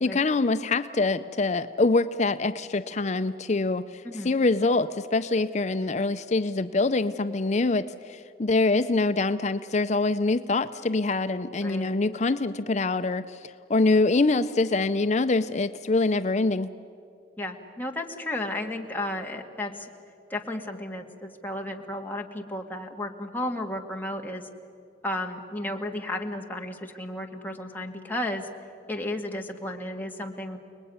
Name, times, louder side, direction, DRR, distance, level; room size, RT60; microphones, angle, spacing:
voice 1, 0.0-16.7, left 3 dB, 40° left, 10 dB, 0.6 m, -25 dB
voice 2, 11.6-11.9 17.4-19.9 20.3-24.5 25.0-28.5 28.9-30.6, left 1 dB, 10° left, 1 dB, 1.9 m, -33 dB
30.0 x 20.0 x 9.5 m, 2.5 s
head